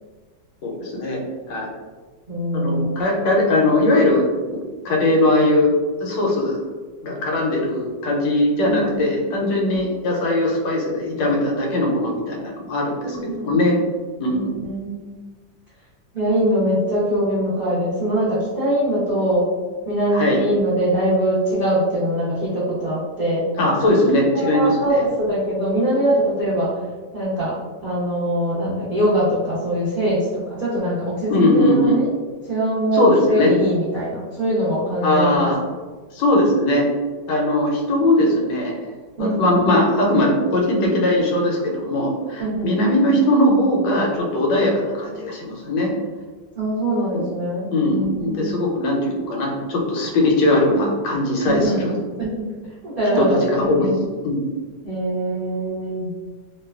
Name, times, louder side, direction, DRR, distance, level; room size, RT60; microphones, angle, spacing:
voice 1, 0.6-1.2 1.5-1.7 2.5-4.3 4.8-5.7 6.0-6.6 7.0-13.7 14.2-14.5 20.1-20.4 23.6-25.0 31.3-32.0 32.9-33.5 35.0-35.6 36.1-36.9 37.3-38.7 39.2-45.9 47.1-47.2 47.7-52.0 53.1-54.0 54.2-54.6, left 1 dB, 85° left, -1 dB, 1.3 m, -20 dB
voice 2, 2.3-3.0 8.7-9.0 9.7-9.8 13.0-13.6 14.3-14.9 16.1-19.5 19.8-23.4 23.8-23.9 24.3-26.8 27.1-27.6 27.8-32.1 32.5-35.5 39.2-39.6 42.4-42.7 46.6-48.5 51.4-52.5 52.8-53.9 54.8-56.1, right 1 dB, 55° right, -11 dB, 0.6 m, -22 dB
3.0 x 2.2 x 2.3 m, 1.4 s
omnidirectional pair, 1.9 m